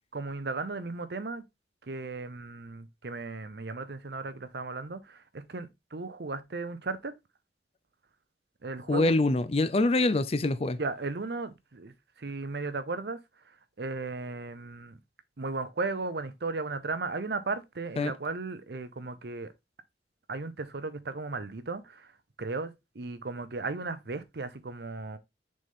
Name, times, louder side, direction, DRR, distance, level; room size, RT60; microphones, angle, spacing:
voice 1, 0.1-1.4 1.8-7.1 8.6-9.2 10.8-13.2 13.8-15.0 15.4-19.5 20.3-22.1 22.4-25.2, right 3 dB, 60° right, 0.7 m, -36 dB
voice 2, 8.9-10.8 18.0-18.1, left 2 dB, 35° left, 0.5 m, -25 dB
6.3 x 4.1 x 3.6 m
head